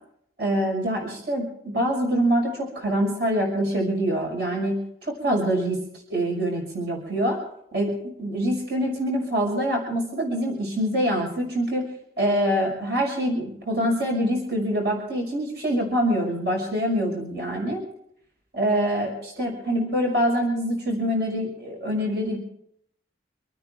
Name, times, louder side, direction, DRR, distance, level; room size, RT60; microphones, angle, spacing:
voice 1, 0.4-4.8 5.0-5.8 6.1-7.4 7.7-11.9 12.2-17.8 18.5-22.4, equal, 65° right, 0 dB, 6.2 m, -25 dB
28.0 x 9.7 x 4.6 m, 0.70 s
head